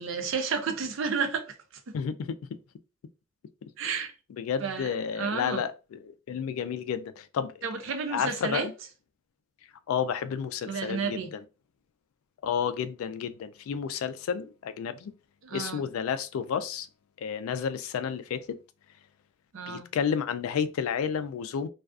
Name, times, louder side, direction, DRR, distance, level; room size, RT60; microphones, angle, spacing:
voice 1, 0.0-1.9 3.8-4.1 4.6-5.6 7.6-8.7 10.7-11.3 15.4-15.9 19.5-19.9, right 5 dB, 70° right, 0.5 m, -32 dB
voice 2, 1.9-2.4 4.4-6.0 6.3-7.6 8.1-8.7 9.9-11.4 12.4-15.1 15.5-16.9 17.2-18.6 19.7-21.7, left 7 dB, 90° left, 0.3 m, -31 dB
2.3 x 2.3 x 2.3 m
head